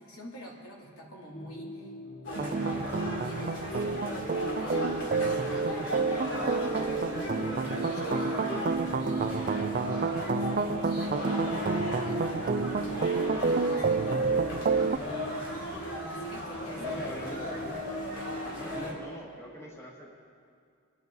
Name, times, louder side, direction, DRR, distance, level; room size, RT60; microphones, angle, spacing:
voice 1, 0.0-1.9 2.2-2.8 3.1-14.5 14.9-15.3 16.0-17.2, equal, 75° left, -3 dB, 2.9 m, -45 dB
sound 1, 1.3-18.9, left 1 dB, 40° left, 1.0 m, -42 dB
sound 2, 2.2-18.9, left 1 dB, 60° left, 3.2 m, -37 dB
sound 3, 2.3-15.0, right 4 dB, 40° right, 0.4 m, -29 dB
voice 2, 14.8-15.3 16.8-17.8 18.4-20.1, equal, 10° left, -2 dB, 1.7 m, -43 dB
26.0 x 11.0 x 4.0 m, 2.2 s
head